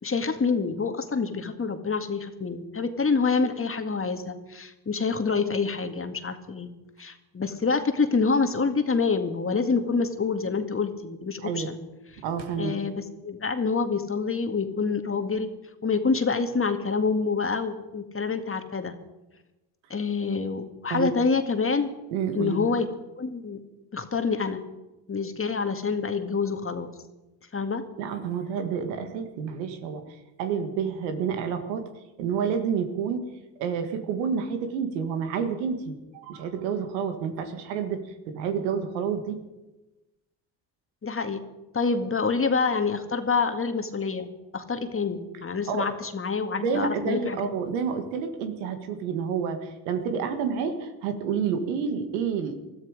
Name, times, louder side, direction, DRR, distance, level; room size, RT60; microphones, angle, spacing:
voice 1, 0.0-6.7 7.0-11.8 12.6-15.5 15.8-19.0 19.9-21.9 22.3-22.9 23.2-23.6 23.9-24.6 25.1-26.9 27.5-27.8 41.0-41.4 41.7-47.4, left 4 dB, 25° left, 7 dB, 2.0 m, -27 dB
voice 2, 12.2-12.7 20.9-21.1 22.1-22.7 28.0-30.0 30.4-31.8 32.2-33.3 33.6-38.0 38.3-39.4 45.7-45.9 46.6-52.6, right 6 dB, 85° right, 7 dB, 2.0 m, -29 dB
21.0 x 13.0 x 5.1 m, 1.0 s
hypercardioid pair, 70°, 49 cm